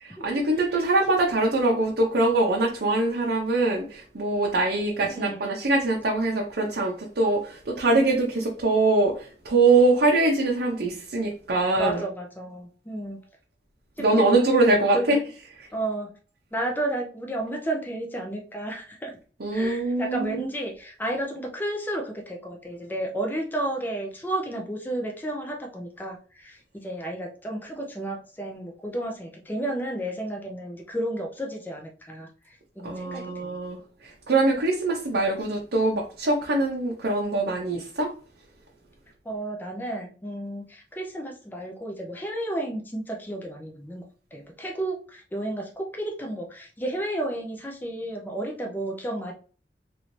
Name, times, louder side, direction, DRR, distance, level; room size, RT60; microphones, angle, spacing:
voice 1, 0.0-12.0 14.0-15.2 15.6-15.7 19.4-20.5 32.8-38.1, right 2 dB, 60° right, -1 dB, 0.6 m, -23 dB
voice 2, 5.0-5.5 11.8-13.2 14.0-14.5 14.9-15.2 15.7-16.1 16.5-19.1 19.5-32.3 32.8-33.5 39.3-44.0 44.3-49.3, right 1 dB, 10° left, 1 dB, 0.5 m, -32 dB
3.1 x 2.6 x 3.1 m, 0.38 s
head